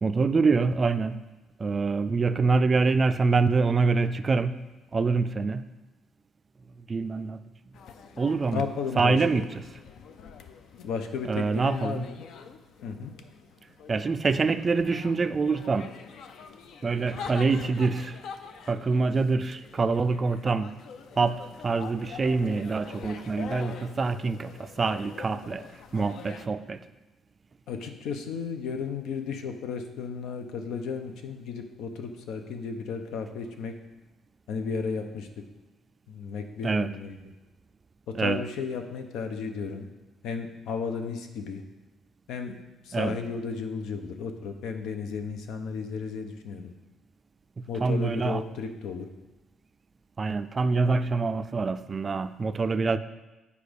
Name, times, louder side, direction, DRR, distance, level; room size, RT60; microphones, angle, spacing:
voice 1, 0.0-1.2 1.6-4.5 4.9-5.6 6.9-7.4 8.2-8.6 9.0-9.5 11.2-12.1 13.9-15.9 16.8-18.2 18.7-20.7 21.2-25.6 25.9-26.8 36.6-36.9 38.1-38.4 42.9-43.2 47.8-48.4 50.2-53.0, right 4 dB, 25° right, 11 dB, 0.3 m, -25 dB
sound 1, 7.7-26.5, left 6 dB, 65° left, 0.5 m, -45 dB
voice 2, 8.5-9.4 10.8-12.3 12.8-13.1 27.7-33.7 34.5-35.4 36.1-37.2 38.1-39.9 40.2-41.6 42.3-46.7 47.7-49.1, left 5 dB, 90° left, 6 dB, 0.8 m, -34 dB
8.4 x 5.0 x 5.2 m, 1.1 s
cardioid pair, 145°, 0 cm